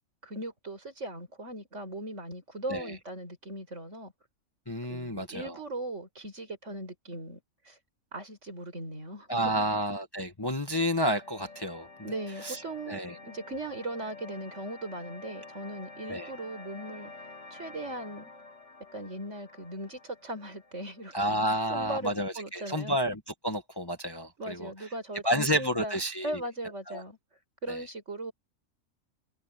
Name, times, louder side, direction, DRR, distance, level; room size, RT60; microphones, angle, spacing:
voice 1, 0.2-4.1 4.9-7.8 8.1-9.7 12.0-17.1 17.5-18.3 18.9-23.0 24.4-26.0 26.2-27.2 27.6-28.3, right 1 dB, 55° right, 5.7 m, -39 dB
voice 2, 4.7-5.6 9.3-11.9 12.4-12.6 12.9-13.2 16.1-16.3 21.1-24.9 25.2-26.4 26.9-27.0 27.7-27.8, equal, 15° left, 1.5 m, -30 dB
sound 1, 10.5-21.5, left 3 dB, 55° left, 2.8 m, -49 dB
omnidirectional pair, 1.4 m